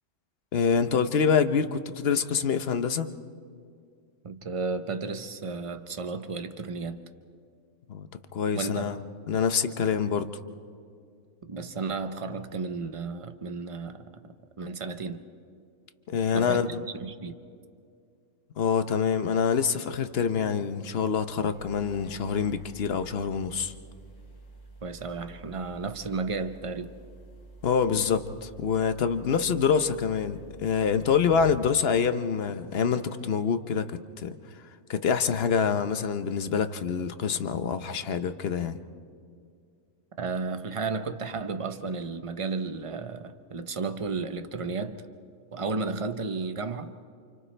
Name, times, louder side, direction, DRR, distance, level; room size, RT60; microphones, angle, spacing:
voice 1, 0.5-3.1 7.9-8.1 8.3-9.0 9.3-10.3 16.1-16.8 18.6-23.7 27.6-34.3 34.9-38.8, left 6 dB, 50° left, 1.0 m, -26 dB
voice 2, 4.2-7.0 8.5-9.0 11.4-14.1 14.6-15.2 16.3-16.7 17.0-17.3 24.8-26.9 40.2-45.0 45.5-46.9, right 4 dB, 30° right, 0.7 m, -33 dB
sound 1, 21.5-31.7, right 2 dB, 85° left, 3.1 m, -49 dB
29.5 x 28.5 x 3.3 m
omnidirectional pair, 1.5 m